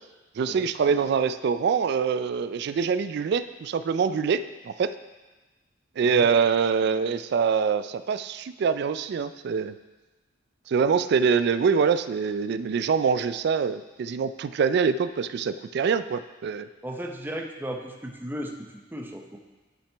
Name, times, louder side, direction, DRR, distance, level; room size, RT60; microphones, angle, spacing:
voice 1, 0.4-5.0 6.0-9.7 10.7-16.7, right 6 dB, 60° right, 13 dB, 0.3 m, -24 dB
voice 2, 16.8-18.5 18.9-19.4, equal, 10° right, 1 dB, 0.6 m, -35 dB
11.5 x 5.8 x 3.4 m, 1.2 s
head